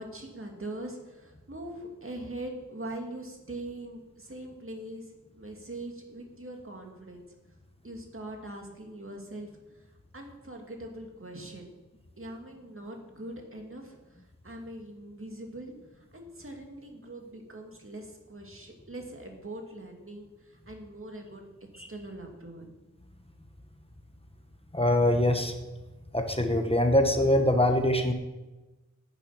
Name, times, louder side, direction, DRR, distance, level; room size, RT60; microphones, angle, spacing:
voice 1, 0.0-5.1 5.3-7.3 7.8-9.5 10.1-11.7 12.2-14.0 14.4-21.4 21.9-22.7, right 1 dB, 45° right, 1 dB, 2.2 m, -42 dB
voice 2, 24.7-25.5 26.1-28.1, left 1 dB, 20° left, 5 dB, 1.2 m, -23 dB
10.0 x 9.3 x 5.6 m, 1.1 s
wide cardioid pair, 65°, 30 cm